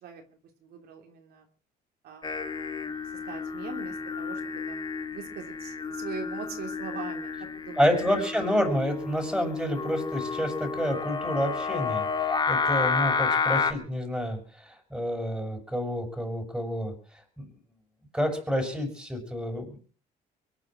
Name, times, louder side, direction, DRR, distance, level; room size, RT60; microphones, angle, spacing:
voice 1, 0.0-1.4 2.0-7.9 8.2-8.3, right 7 dB, 70° right, 3 dB, 3.3 m, -43 dB
Singing, 2.2-13.7, left 5 dB, 25° left, 1.8 m, -31 dB
voice 2, 7.8-16.9 17.4-17.5 18.1-19.8, equal, 5° right, 4 dB, 6.8 m, -29 dB
23.5 x 10.0 x 6.2 m, 0.43 s
cardioid pair, 110°, 17 cm